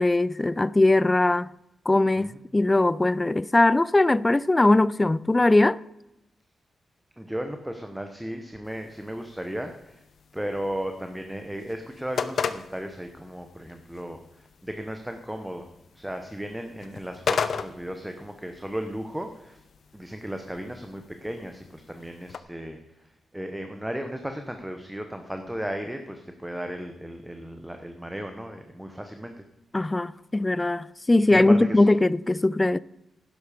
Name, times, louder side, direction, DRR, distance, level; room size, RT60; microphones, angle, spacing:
voice 1, 0.0-1.5 1.9-5.8 29.7-32.8, left 2 dB, 15° left, 0.3 m, -20 dB
voice 2, 7.2-10.0 10.3-19.6 19.9-29.3 31.3-31.8, equal, 5° right, 1.0 m, -35 dB
sound 1, 8.6-22.4, left 6 dB, 60° left, 0.8 m, -37 dB
12.0 x 10.5 x 5.1 m
cardioid pair, 115°, 0 cm